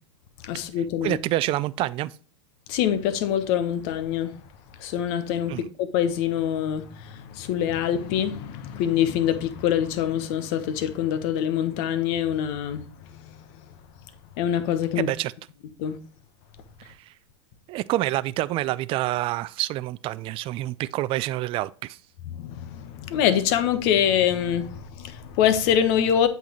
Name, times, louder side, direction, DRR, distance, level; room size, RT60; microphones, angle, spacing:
voice 1, 0.4-1.2 2.7-4.4 4.8-12.8 13.1-13.4 14.4-15.1 15.8-16.0 22.3-26.3, left 9 dB, 60° left, 1.1 m, -25 dB
voice 2, 1.0-2.1 5.5-5.7 15.0-15.3 16.8-17.1 17.7-22.0, right 16 dB, 40° right, 0.4 m, -27 dB
8.2 x 5.8 x 3.0 m
hypercardioid pair, 110°, 15 cm